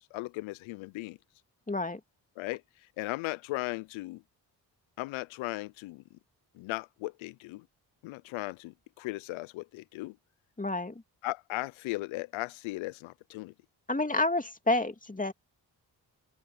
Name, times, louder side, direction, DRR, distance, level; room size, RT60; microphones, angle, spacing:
voice 1, 0.1-1.2 2.4-4.2 5.0-6.0 6.5-7.6 8.0-10.2 11.2-13.5, left 20 dB, 80° left, 0.6 m, -37 dB
voice 2, 1.7-2.0 10.6-11.0 13.9-15.3, left 2 dB, 15° left, 2.6 m, -29 dB
open air
hypercardioid pair, 40°, 46 cm